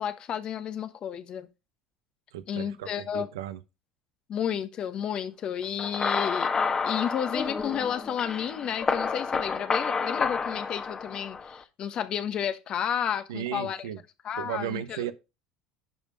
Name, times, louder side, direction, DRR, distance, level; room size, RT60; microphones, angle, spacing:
voice 1, 0.0-1.5 2.5-3.3 4.3-6.5 6.8-13.8 14.2-15.1, left 9 dB, 45° left, 1.3 m, -31 dB
voice 2, 2.3-3.6 13.3-14.0 14.4-15.1, right 11 dB, 75° right, 0.9 m, -35 dB
sound 1, 5.8-11.6, left 5 dB, 30° left, 1.4 m, -30 dB
11.0 x 5.2 x 4.9 m
hypercardioid pair, 75°, 2 cm